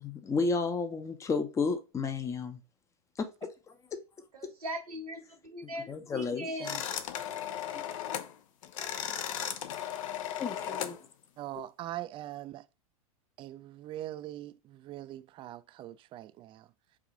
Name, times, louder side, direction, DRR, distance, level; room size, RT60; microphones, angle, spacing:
voice 1, 0.2-2.6 3.2-3.3 5.9-6.7 10.4-11.0, left 4 dB, 15° left, 0.6 m, -32 dB
voice 2, 4.3-6.8, equal, 85° right, 1.3 m, -40 dB
sound 1, 6.6-8.3 8.6-11.0, left 9 dB, 60° left, 0.6 m, -36 dB
voice 3, 11.4-12.6 13.4-16.7, right 14 dB, 30° right, 0.3 m, -42 dB
4.8 x 2.5 x 3.8 m
hypercardioid pair, 95°, 19 cm